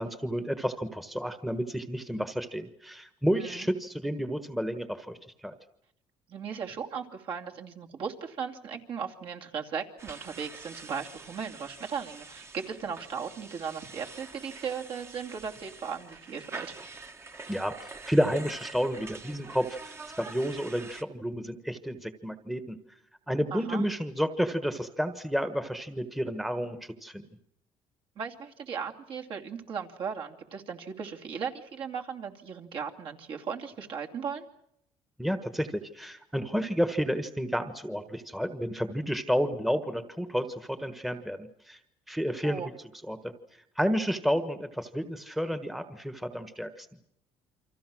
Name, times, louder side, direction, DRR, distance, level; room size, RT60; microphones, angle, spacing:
voice 1, 0.0-5.5 17.5-22.8 23.3-27.2 35.2-41.8 42.1-42.6 43.0-43.3 43.8-46.9, equal, ahead, 9 dB, 1.3 m, -31 dB
voice 2, 3.3-3.7 6.3-16.7 23.5-23.9 28.2-34.4 42.4-42.7, right 6 dB, 55° right, 1 dB, 2.8 m, -37 dB
sound 1, 10.0-21.0, right 3 dB, 25° right, 1.4 m, -46 dB
29.0 x 25.0 x 6.2 m, 0.74 s
cardioid pair, 125°, 11 cm